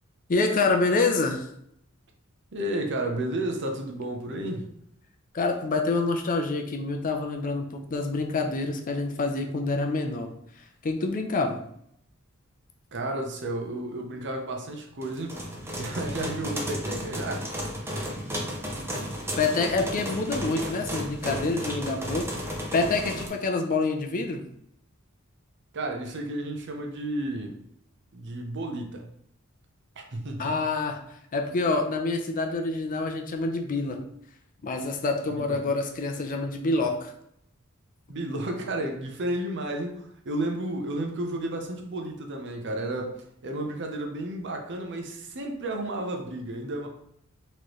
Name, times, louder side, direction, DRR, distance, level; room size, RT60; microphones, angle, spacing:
voice 1, 0.3-1.5 5.3-10.3 10.8-11.6 19.4-22.3 22.7-24.4 30.4-31.0 31.3-34.0 34.6-37.1, left 3 dB, 40° left, 4 dB, 0.5 m, -27 dB
voice 2, 2.5-4.6 12.9-15.4 15.7-17.4 25.7-27.6 28.1-29.0 30.0-30.5 35.4-35.6 38.1-43.1 43.4-46.9, right 1 dB, 55° right, 3 dB, 0.7 m, -32 dB
sound 1, 15.0-23.3, equal, 10° right, 0.6 m, -33 dB
4.4 x 3.1 x 3.0 m, 0.72 s
head